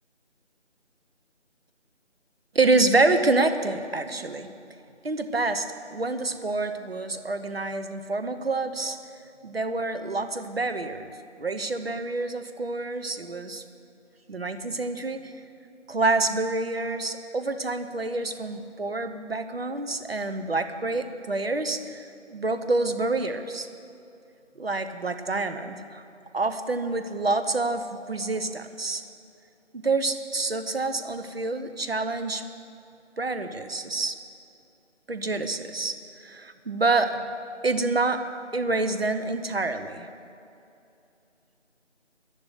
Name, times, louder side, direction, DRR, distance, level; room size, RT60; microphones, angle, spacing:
voice 1, 2.5-4.5 5.0-9.0 9.4-11.1 11.4-13.6 14.3-15.3 15.9-23.7 24.6-26.0 26.3-29.0 29.7-32.4 33.2-34.2 35.1-37.2 37.6-38.2 38.5-40.1, right 3 dB, 55° right, 9 dB, 0.9 m, -27 dB
11.0 x 10.5 x 8.2 m, 2.6 s
figure-of-eight pair, 175°, 36 cm